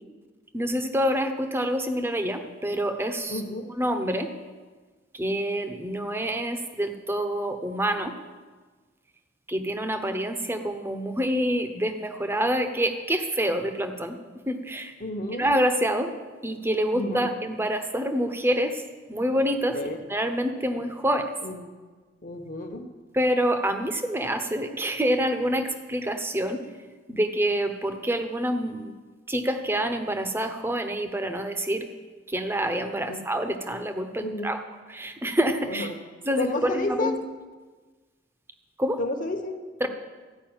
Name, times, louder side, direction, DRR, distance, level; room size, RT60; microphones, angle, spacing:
voice 1, 0.5-3.4 3.8-4.3 5.1-8.1 9.5-14.2 14.5-14.9 15.3-16.1 16.4-18.8 19.1-19.8 20.1-21.3 23.1-26.6 27.1-28.9 29.3-31.9 32.3-34.6 34.9-35.9 36.2-37.2 38.8-39.0 39.8-39.9, equal, 15° right, 7 dB, 0.9 m, -27 dB
voice 2, 3.3-3.7 15.0-15.5 16.9-17.3 19.7-20.0 21.4-21.6 22.2-22.9 33.0-33.2 34.2-34.5 35.7-35.9 36.4-37.2 39.0-39.9, left 2 dB, 45° left, 5 dB, 1.2 m, -31 dB
14.5 x 5.4 x 8.9 m, 1.4 s
head